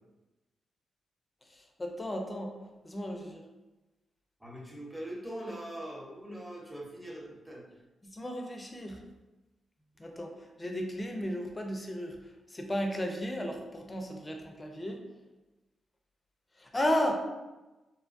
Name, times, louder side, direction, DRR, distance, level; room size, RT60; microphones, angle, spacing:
voice 1, 1.5-2.6 2.8-3.4 8.0-9.0 10.0-15.0 16.6-17.1, equal, 25° left, 3 dB, 0.5 m, -34 dB
voice 2, 4.4-7.7, right 1 dB, 5° right, -4 dB, 1.0 m, -42 dB
3.0 x 2.2 x 2.5 m, 1.1 s
supercardioid pair, 55°, 0 cm